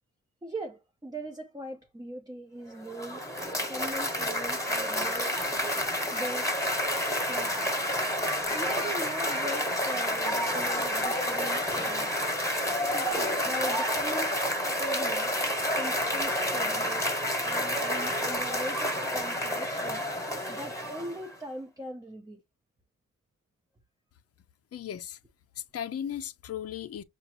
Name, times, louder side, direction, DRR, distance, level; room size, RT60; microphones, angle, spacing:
voice 1, 0.4-3.2 3.6-5.3 6.1-6.5 7.3-7.8 8.5-12.2 12.9-14.4 14.8-15.3 15.7-17.1 17.4-20.0 20.5-22.4, right 1 dB, 10° right, 0.6 m, -40 dB
Cheering / Applause, 2.7-21.3, left 1 dB, 10° left, 1.2 m, -29 dB
voice 2, 24.7-25.2 25.6-27.0, left 9 dB, 45° left, 0.5 m, -36 dB
6.5 x 2.5 x 2.9 m
wide cardioid pair, 140°, 34 cm